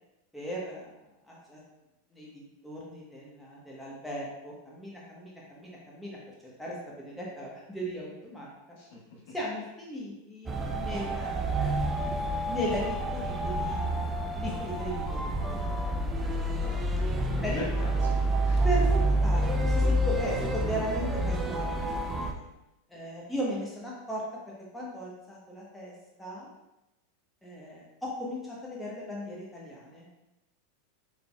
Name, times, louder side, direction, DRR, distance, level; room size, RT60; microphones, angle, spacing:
voice 1, 0.3-1.0 1.3-1.6 2.1-6.2 6.6-8.5 9.3-13.8 14.3-15.6 17.4-17.6 18.6-21.7 22.2-22.4 22.9-25.9 26.2-26.5 27.4-30.1, equal, 5° left, -5 dB, 1.1 m, -37 dB
voice 2, 8.8-9.3 16.6-18.7, left 2 dB, 65° left, -4 dB, 1.2 m, -44 dB
sound 1, 10.5-22.3, right 1 dB, 20° right, 0.4 m, -28 dB
3.9 x 3.4 x 2.3 m, 0.93 s
hypercardioid pair, 95°, 0 cm